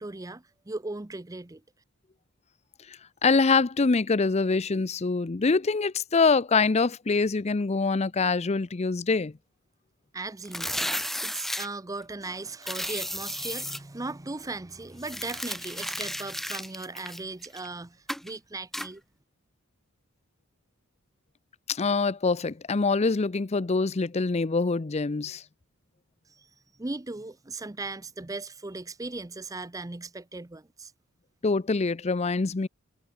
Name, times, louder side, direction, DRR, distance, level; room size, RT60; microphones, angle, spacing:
voice 1, 0.0-1.6 10.1-11.0 11.2-19.0 26.3-26.5 26.8-30.9, right 3 dB, 15° right, 0.6 m, -38 dB
voice 2, 2.9-9.3 21.7-25.4 31.4-32.7, left 4 dB, 30° left, 0.5 m, -25 dB
sound 1, 10.4-11.7 12.6-13.8 15.0-17.7 18.1-18.3 18.7-18.9, equal, ahead, 1.4 m, -33 dB
head